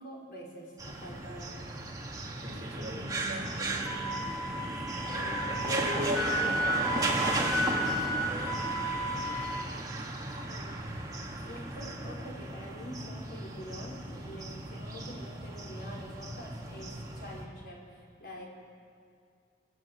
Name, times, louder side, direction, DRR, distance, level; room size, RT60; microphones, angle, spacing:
voice 1, 0.0-1.7 10.5-10.8 11.4-18.5, equal, 60° left, -2 dB, 5.2 m, -46 dB
sound 1, 0.8-17.4, right 2 dB, 20° right, 2.3 m, -35 dB
voice 2, 2.4-4.1 5.0-8.2, equal, 40° right, -4 dB, 5.5 m, -39 dB
Wind instrument woodwind instrument, 3.9-9.7, equal, ahead, 1.2 m, -33 dB
26.5 x 15.5 x 8.1 m, 2.2 s
head